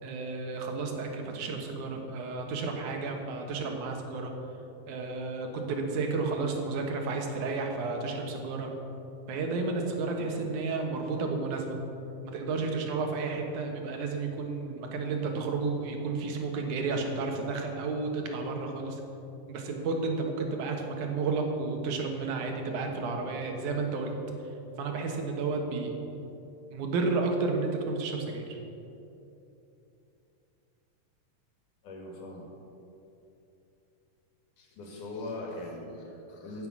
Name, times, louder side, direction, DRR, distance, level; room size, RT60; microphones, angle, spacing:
voice 1, 0.0-4.3 4.9-8.7 9.3-11.8 12.2-19.0 19.5-24.1 24.8-25.9 26.7-28.6, right 3 dB, 75° right, 2 dB, 2.8 m, -32 dB
voice 2, 31.8-32.5 34.6-36.7, left 2 dB, 80° left, -1 dB, 3.6 m, -40 dB
15.5 x 7.7 x 6.1 m, 2.9 s
omnidirectional pair, 3.6 m